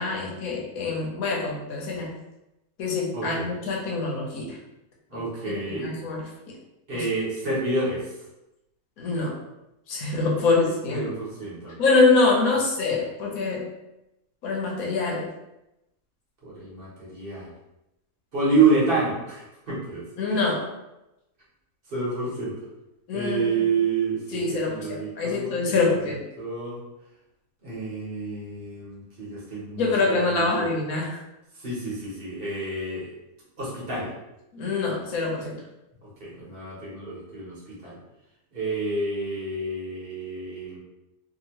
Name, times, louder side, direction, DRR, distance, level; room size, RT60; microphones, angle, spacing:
voice 1, 0.0-2.1 2.8-4.6 5.5-6.6 6.9-7.0 9.0-9.4 9.9-11.1 11.8-13.7 14.4-15.3 20.2-20.7 23.1-23.7 24.3-26.2 29.8-31.2 34.5-35.6, left 3 dB, 85° left, -2 dB, 1.2 m, -25 dB
voice 2, 3.1-3.5 5.1-5.9 6.9-8.1 10.9-11.7 16.4-17.5 18.3-20.1 21.9-22.5 23.1-26.1 26.4-26.8 27.6-29.9 30.2-30.7 31.5-33.1 33.6-34.1 36.0-38.0 38.5-40.8, right 3 dB, 45° right, -6 dB, 1.2 m, -28 dB
2.8 x 2.8 x 2.9 m, 0.92 s
omnidirectional pair, 1.5 m